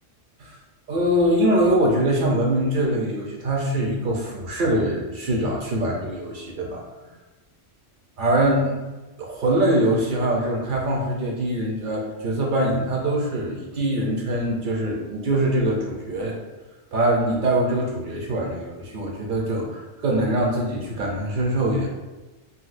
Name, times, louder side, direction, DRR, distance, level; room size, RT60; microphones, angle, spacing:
voice 1, 0.9-6.8 8.2-8.7 9.2-16.4 16.9-21.9, right 1 dB, 55° right, -1 dB, 0.6 m, -23 dB
4.0 x 2.2 x 2.4 m, 1.2 s
omnidirectional pair, 1.3 m